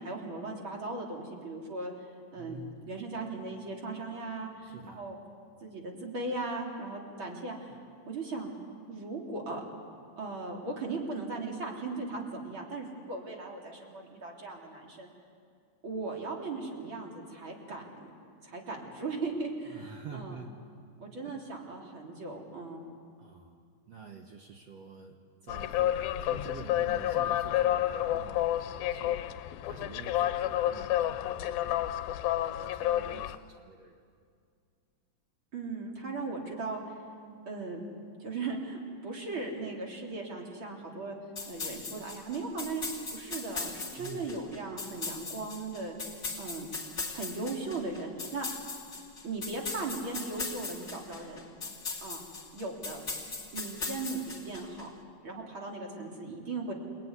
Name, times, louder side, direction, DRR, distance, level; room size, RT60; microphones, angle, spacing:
voice 1, 0.0-1.9 2.3-2.6 2.9-5.2 5.6-7.7 8.1-8.5 8.9-9.6 10.2-15.1 15.8-17.9 18.4-20.4 21.0-22.8 35.5-36.8 37.5-37.8 38.2-41.2 41.5-42.8 43.1-46.0 46.4-46.7 47.1-48.5 49.2-51.4 52.0-52.2 52.5-53.0 53.5-54.9 55.2-56.7, right 3 dB, 35° right, 0 dB, 3.9 m, -38 dB
voice 2, 2.4-2.9 4.5-5.2 19.7-20.6 21.2-21.4 23.2-23.6 23.9-29.3 29.6-34.0 44.0-44.3, right 4 dB, 55° right, 3 dB, 2.0 m, -48 dB
sound 1, 25.5-33.4, left 13 dB, 85° left, 2.6 m, -30 dB
sound 2, 41.4-54.8, left 4 dB, 25° left, 2.2 m, -39 dB
29.5 x 20.0 x 9.8 m, 2.2 s
omnidirectional pair, 4.1 m